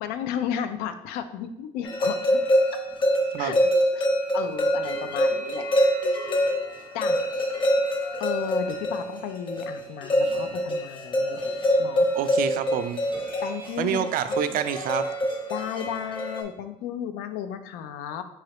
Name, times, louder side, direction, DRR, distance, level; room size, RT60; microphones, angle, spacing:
voice 1, 0.0-2.4 3.4-4.1 4.3-5.7 6.9-7.3 8.2-11.4 11.8-12.1 13.4-14.0 15.5-18.2, left 9 dB, 85° left, 9 dB, 0.4 m, -33 dB
sound 1, 1.8-16.4, equal, 35° left, 0.8 m, -25 dB
voice 2, 12.1-13.0 13.8-15.1, right 9 dB, 65° right, 11 dB, 0.4 m, -27 dB
4.7 x 3.1 x 2.9 m, 0.85 s
supercardioid pair, 85°, 16 cm